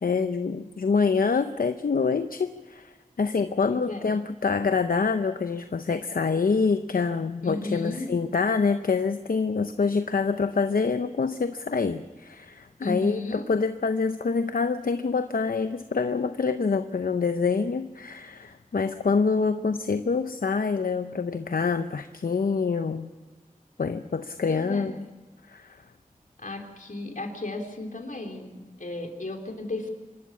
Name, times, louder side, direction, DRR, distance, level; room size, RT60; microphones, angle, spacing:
voice 1, 0.0-23.1 23.8-24.9 25.5-25.8, left 5 dB, 85° left, 9 dB, 0.7 m, -26 dB
voice 2, 3.7-4.1 7.4-8.1 12.8-13.4 24.5-25.0 26.4-29.9, left 2 dB, 65° left, 2 dB, 3.2 m, -34 dB
25.5 x 13.5 x 8.3 m, 1.3 s
wide cardioid pair, 55°, 14 cm